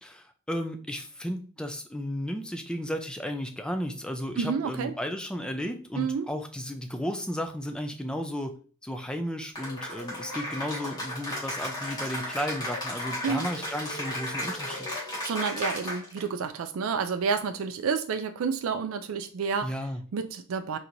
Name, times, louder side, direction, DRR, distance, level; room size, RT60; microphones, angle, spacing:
voice 1, 0.0-8.5 8.8-14.9 19.6-20.0, equal, 5° left, 0.4 m, -34 dB
voice 2, 4.4-4.9 6.0-6.3 13.2-13.5 15.2-19.7 20.1-20.8, right 5 dB, 85° right, 0.4 m, -29 dB
Cheering / Applause, 9.6-16.3, left 1 dB, 20° left, 1.6 m, -34 dB
4.4 x 2.8 x 2.5 m
head